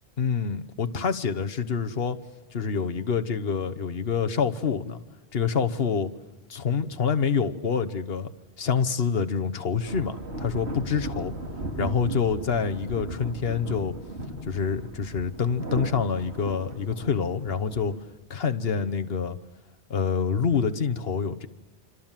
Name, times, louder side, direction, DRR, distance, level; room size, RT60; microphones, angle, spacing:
voice 1, 0.2-2.2 2.5-5.0 5.3-6.1 6.5-8.3 8.6-11.3 11.8-13.9 14.4-17.9 18.3-19.4 19.9-21.5, left 6 dB, 60° left, 9 dB, 1.3 m, -26 dB
sound 1, 9.8-18.0, right 2 dB, 75° right, 3.0 m, -37 dB
27.5 x 26.0 x 7.4 m, 1.2 s
omnidirectional pair, 1.1 m